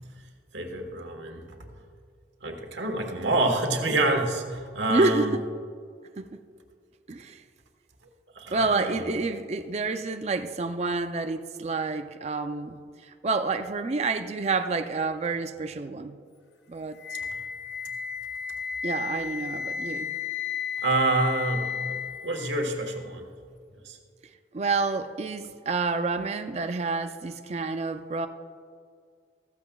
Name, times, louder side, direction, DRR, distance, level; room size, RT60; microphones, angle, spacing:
voice 1, 0.5-1.6 2.4-5.3 8.3-9.2 20.8-21.9 22.2-23.3 23.8-24.0, right 2 dB, 85° right, 3 dB, 1.4 m, -27 dB
voice 2, 4.9-5.4 6.2-6.4 7.1-7.4 8.5-16.2 16.7-17.0 18.8-20.1 24.5-28.3, right 3 dB, 35° right, 8 dB, 0.4 m, -28 dB
Wind instrument woodwind instrument, 17.0-23.0, left 7 dB, 70° left, 0.6 m, -33 dB
14.5 x 14.5 x 2.3 m, 2.2 s
head